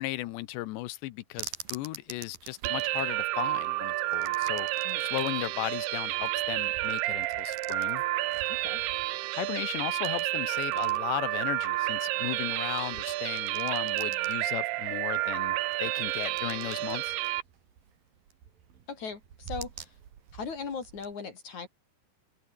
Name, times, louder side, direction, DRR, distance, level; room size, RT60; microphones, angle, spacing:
voice 1, 0.0-4.7 5.0-8.0 9.3-17.2, left 17 dB, 90° left, 3.2 m, -36 dB
sound 1, 1.3-21.1, right 8 dB, 60° right, 4.1 m, -48 dB
sound 2, 2.6-17.4, right 17 dB, 80° right, 2.7 m, -30 dB
voice 2, 8.5-8.8 18.9-19.9 20.3-21.7, left 5 dB, 45° left, 4.1 m, -39 dB
open air
omnidirectional pair, 4.9 m